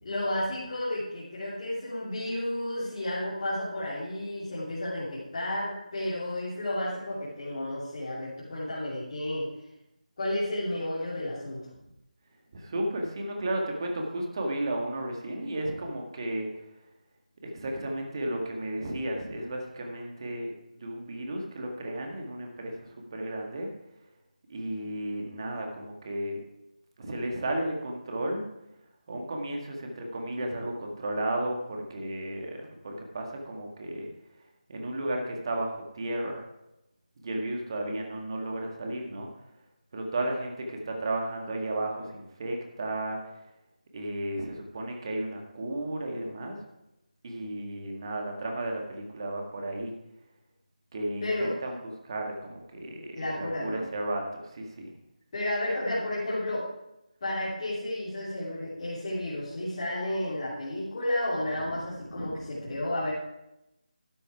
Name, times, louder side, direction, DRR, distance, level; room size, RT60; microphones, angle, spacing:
voice 1, 0.0-9.5 10.2-11.7 51.2-51.5 53.1-53.9 55.3-56.7 57.2-63.1, left 1 dB, 40° left, -9 dB, 3.0 m, -32 dB
voice 2, 12.5-16.5 17.4-20.5 20.8-23.7 24.5-26.4 27.0-28.5 29.1-34.1 34.7-36.4 37.2-39.3 39.9-43.2 43.9-46.6 47.2-50.0 50.9-54.9 62.1-62.5, right 1 dB, 35° right, 1 dB, 1.9 m, -33 dB
12.5 x 6.7 x 4.8 m, 0.90 s
figure-of-eight pair, 160°, 4 cm